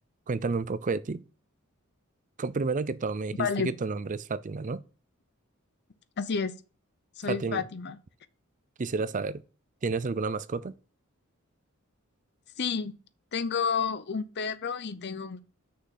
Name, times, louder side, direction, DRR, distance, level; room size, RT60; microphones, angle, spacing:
voice 1, 0.3-1.2 2.4-4.8 7.3-7.6 8.8-9.4 9.8-10.8, right 4 dB, 35° right, 0.5 m, -30 dB
voice 2, 3.4-3.7 6.2-6.5 7.2-8.0 12.6-12.9 13.3-15.4, left 6 dB, 50° left, 0.6 m, -30 dB
6.4 x 5.7 x 5.8 m
head